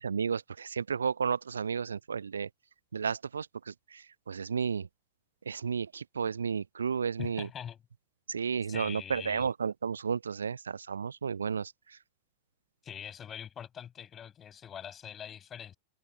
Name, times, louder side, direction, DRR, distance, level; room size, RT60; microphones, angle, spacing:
voice 1, 0.0-2.5 2.9-4.9 5.5-7.5 8.3-12.0, right 6 dB, 70° right, 0.4 m, -33 dB
voice 2, 7.2-7.8 8.7-9.5 12.8-15.7, left 9 dB, 25° left, 6.3 m, -43 dB
figure-of-eight pair, 90°, 0 cm